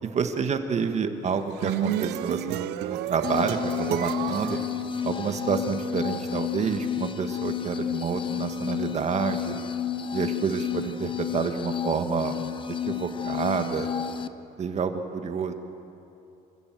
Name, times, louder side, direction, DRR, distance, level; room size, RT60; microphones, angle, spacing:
voice 1, 0.0-4.6 5.0-9.6 10.1-12.4 12.9-13.9 14.6-15.5, right 6 dB, 40° right, 7 dB, 1.6 m, -28 dB
sound 1, 1.3-5.6, right 12 dB, 90° right, 0.8 m, -32 dB
sound 2, 3.2-14.3, left 8 dB, 30° left, 0.7 m, -31 dB
25.5 x 15.5 x 7.7 m, 2.9 s
cardioid pair, 110°, 17 cm